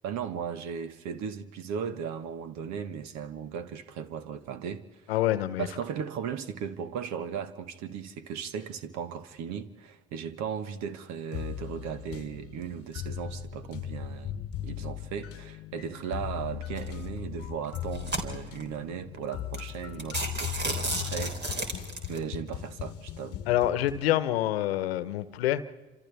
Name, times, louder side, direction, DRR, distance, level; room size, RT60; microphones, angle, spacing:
voice 1, 0.0-4.9 5.6-14.4 14.6-21.8 22.1-23.4, right 7 dB, 65° right, 1.5 m, -37 dB
voice 2, 5.1-5.7 23.5-25.6, left 13 dB, 80° left, 1.0 m, -26 dB
sound 1, 11.3-24.1, left 11 dB, 50° left, 1.1 m, -38 dB
sound 2, 16.8-17.1 17.6-18.6 19.2-19.3 19.5-19.7 20.0-22.2, right 2 dB, 35° right, 3.6 m, -33 dB
29.5 x 27.0 x 3.5 m
hypercardioid pair, 60°, 30 cm